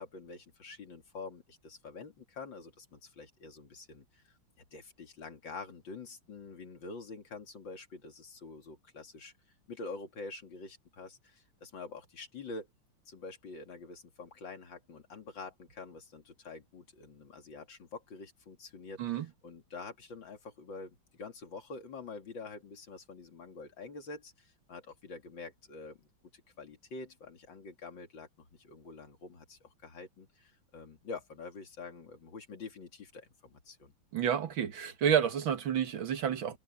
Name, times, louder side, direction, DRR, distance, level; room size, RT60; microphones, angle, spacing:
voice 1, 0.0-4.4 4.7-9.3 9.7-12.7 13.1-26.1 26.6-33.9, left 4 dB, 60° left, 3.2 m, -46 dB
voice 2, 34.1-36.6, right 8 dB, 65° right, 2.3 m, -30 dB
omnidirectional pair, 2.3 m